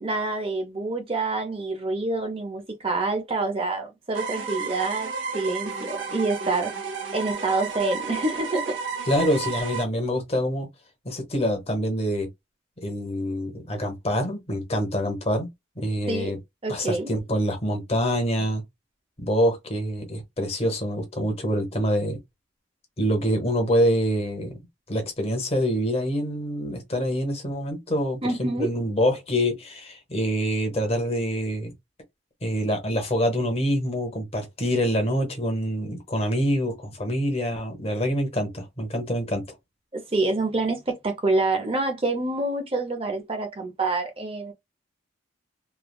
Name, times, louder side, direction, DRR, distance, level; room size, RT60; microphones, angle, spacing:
voice 1, 0.0-8.8 16.1-16.3 16.6-17.1 28.2-28.7 39.9-44.5, right 2 dB, 30° right, 0.6 m, -27 dB
sound 1, 4.1-9.8, right 5 dB, 70° right, 0.7 m, -32 dB
voice 2, 9.1-10.7 11.0-12.3 12.8-15.5 15.8-16.4 16.7-18.6 19.2-22.2 23.0-24.6 24.9-31.7 32.4-39.5, equal, 30° left, 0.9 m, -26 dB
3.3 x 2.3 x 2.2 m
head